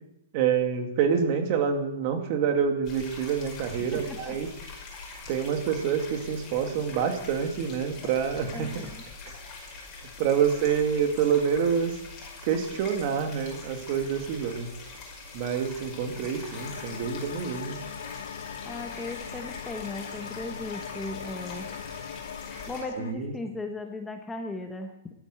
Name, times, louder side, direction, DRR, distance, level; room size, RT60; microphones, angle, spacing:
voice 1, 0.3-4.5 5.3-8.9 10.2-12.0 12.4-14.7 15.3-17.8 23.0-23.3, right 7 dB, 40° right, 5 dB, 2.4 m, -27 dB
sound 1, 2.8-22.8, left 4 dB, 25° left, 5.6 m, -43 dB
voice 2, 3.8-4.4 8.5-9.0 18.6-21.7 22.7-24.9, left 2 dB, 5° left, 4 dB, 1.1 m, -37 dB
sound 2, 16.5-23.1, left 7 dB, 85° left, 1.3 m, -40 dB
13.5 x 11.5 x 7.9 m, 0.86 s
hypercardioid pair, 160°, 0 cm